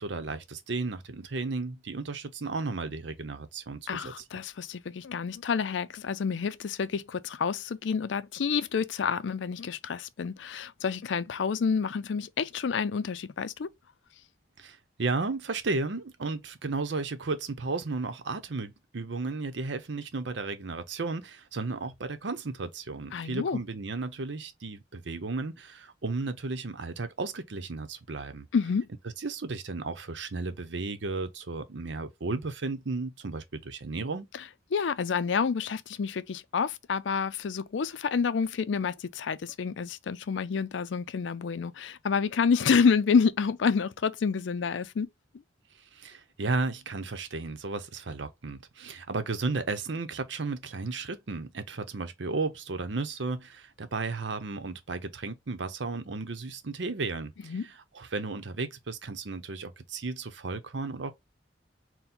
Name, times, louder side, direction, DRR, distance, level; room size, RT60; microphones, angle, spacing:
voice 1, 0.0-4.1 14.6-28.5 29.2-34.3 45.9-61.1, right 3 dB, 70° right, 0.7 m, -34 dB
voice 2, 3.9-13.7 23.1-23.6 28.5-28.9 34.3-34.4 34.7-45.1 57.4-57.6, left 5 dB, 80° left, 0.4 m, -28 dB
4.3 x 2.2 x 3.7 m
head